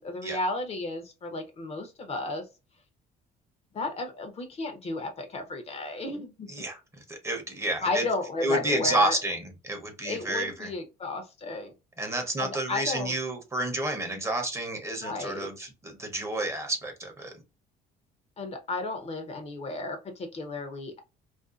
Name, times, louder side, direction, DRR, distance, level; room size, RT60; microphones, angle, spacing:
voice 1, 0.0-2.4 3.7-6.5 7.8-9.2 10.0-11.7 12.4-13.1 15.0-15.5 18.4-21.0, left 2 dB, 40° left, 0.7 m, -33 dB
voice 2, 6.5-8.1 8.4-10.7 12.0-17.3, right 1 dB, 15° right, 0.7 m, -30 dB
2.5 x 2.3 x 2.4 m
cardioid pair, 110°, 17 cm